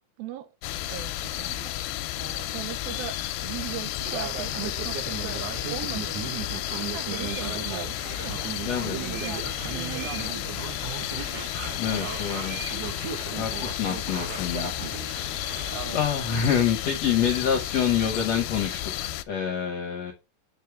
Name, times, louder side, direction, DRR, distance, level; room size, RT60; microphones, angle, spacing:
voice 1, 0.2-0.5 0.9-1.1 1.4-1.7 2.2-3.2 3.4-5.4 5.7-6.3 6.9-8.5 9.0-10.7, right 11 dB, 75° right, 2.6 m, -39 dB
sound 1, 0.6-19.2, left 14 dB, 90° left, 2.7 m, -32 dB
Male speech man speaking, 4.1-16.0, right 8 dB, 60° right, 1.8 m, -37 dB
sound 2, 7.1-7.5 9.0-10.3 11.9-12.8, right 7 dB, 35° right, 2.8 m, -42 dB
voice 2, 8.6-9.0 11.8-12.6 13.4-20.1, left 8 dB, 70° left, 1.5 m, -27 dB
7.8 x 6.5 x 3.5 m
omnidirectional pair, 4.6 m